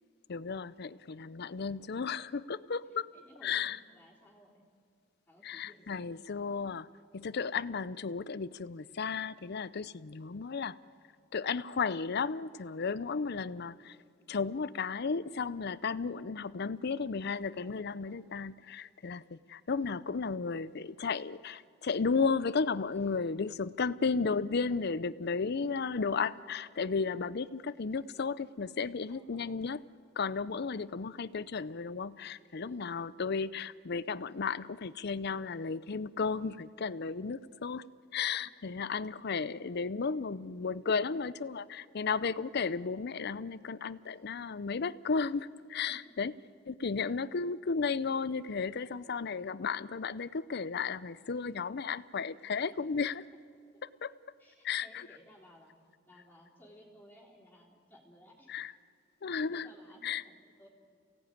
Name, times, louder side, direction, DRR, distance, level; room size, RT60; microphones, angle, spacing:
voice 1, 0.3-3.1 3.4-3.8 5.4-6.9 7.1-10.8 11.3-14.0 14.3-29.8 30.2-37.8 38.1-46.3 46.7-53.1 53.8-54.1 54.6-55.1 58.5-58.7 59.2-59.7 60.0-60.2, left 5 dB, 55° left, 17 dB, 0.6 m, -34 dB
voice 2, 2.9-4.6 5.3-6.7 18.0-18.2 22.9-23.1 29.1-29.6 32.6-32.9 38.4-38.5 45.9-46.2 47.0-47.1 52.6-53.1 54.4-55.8 56.1-58.6 59.2-60.7, equal, 10° left, -4 dB, 3.5 m, -59 dB
29.0 x 17.5 x 9.3 m, 2.3 s
head